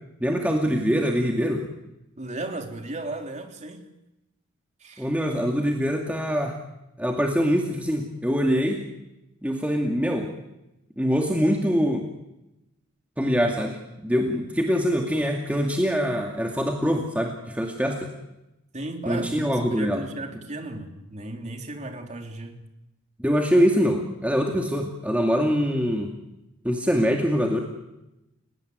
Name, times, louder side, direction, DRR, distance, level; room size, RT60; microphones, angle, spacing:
voice 1, 0.2-1.7 5.0-6.6 7.0-8.9 9.4-10.3 11.0-12.1 13.2-18.1 19.1-20.0 20.3-20.4 23.2-26.1 26.6-27.6, equal, 5° right, 2.4 m, -24 dB
voice 2, 2.2-3.9 4.8-5.1 18.7-22.6, right 2 dB, 30° right, 3.5 m, -35 dB
30.0 x 18.5 x 9.5 m
head